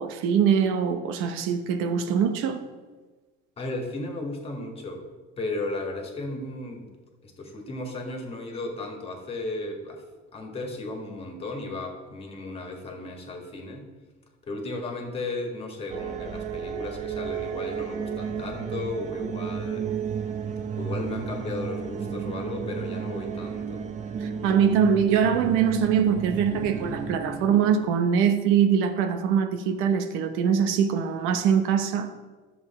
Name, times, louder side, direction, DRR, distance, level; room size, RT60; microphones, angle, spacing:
voice 1, 0.0-2.6 24.2-32.1, right 7 dB, 80° right, 0.9 m, -23 dB
voice 2, 3.6-5.1 5.4-6.9 7.2-10.0 10.3-13.8 14.4-19.9 20.8-23.8, left 2 dB, 30° left, 1.7 m, -35 dB
sound 1, 15.9-28.1, right 7 dB, 35° right, 0.7 m, -33 dB
11.5 x 7.1 x 4.3 m
cardioid pair, 150°, 21 cm